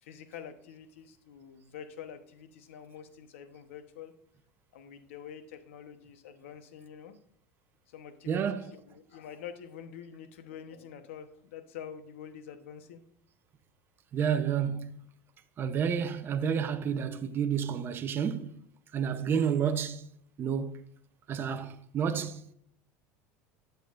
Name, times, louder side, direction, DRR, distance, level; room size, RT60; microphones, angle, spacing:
voice 1, 0.0-4.1 4.7-7.2 7.9-13.0, left 8 dB, 90° left, 1.0 m, -46 dB
voice 2, 8.3-8.7 14.1-14.9 15.6-18.6 18.9-20.1 20.4-20.8 21.3-22.5, right 7 dB, 35° right, 0.7 m, -30 dB
9.2 x 7.8 x 2.5 m
supercardioid pair, 120°, 7 cm